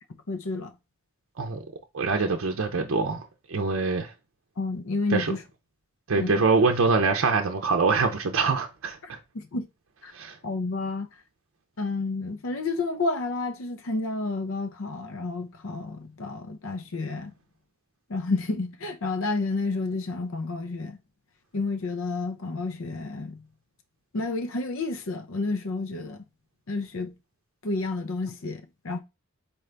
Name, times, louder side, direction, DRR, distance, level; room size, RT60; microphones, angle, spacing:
voice 1, 0.3-0.7 4.6-5.4 6.1-6.4 9.0-9.7 10.0-10.1 10.4-11.1 11.8-17.3 18.1-21.0 21.5-23.4 24.1-26.2 26.7-27.1 27.6-29.0, left 3 dB, 70° left, 0.6 m, -30 dB
voice 2, 1.9-3.2 3.5-4.1 5.1-5.3 6.1-9.0 10.1-10.4, right 4 dB, 65° right, 0.6 m, -24 dB
4.2 x 3.8 x 3.3 m
head